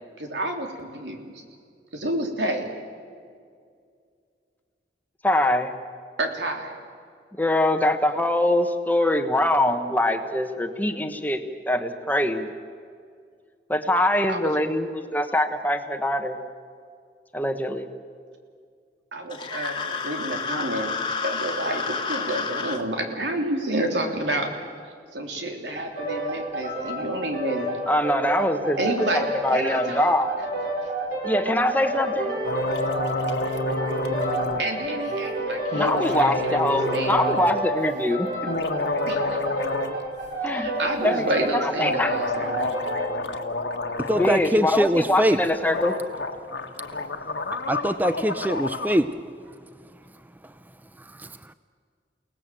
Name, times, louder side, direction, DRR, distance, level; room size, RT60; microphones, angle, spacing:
voice 1, 0.2-1.4 1.9-2.7 6.2-6.8 14.3-14.6 19.1-24.5 25.1-27.7 28.8-29.2 29.5-30.1 34.6-37.3 39.1-39.4 40.5-42.6, right 1 dB, 90° right, 3 dB, 3.6 m, -29 dB
voice 2, 5.2-5.7 7.4-11.4 11.7-12.5 13.7-16.4 17.3-17.9 27.9-28.8 29.1-30.3 31.2-32.3 35.7-38.3 40.4-40.7 41.0-41.3 41.6-42.2 44.1-45.9, left 1 dB, 10° left, 7 dB, 1.2 m, -23 dB
sound 1, 19.3-22.8, left 4 dB, 25° left, 1.7 m, -30 dB
sound 2, 25.7-43.2, right 1 dB, 55° right, 6.1 m, -30 dB
sound 3, 32.4-34.7 35.7-37.5 38.3-40.0 40.2-40.3 41.8-44.5 45.4-45.5 45.7-49.0, left 3 dB, 85° left, 1.6 m, -29 dB
voice 3, 44.0-45.4 47.7-49.2 51.1-51.4, equal, 10° right, 12 dB, 0.5 m, -23 dB
30.0 x 18.5 x 7.7 m, 2.2 s
head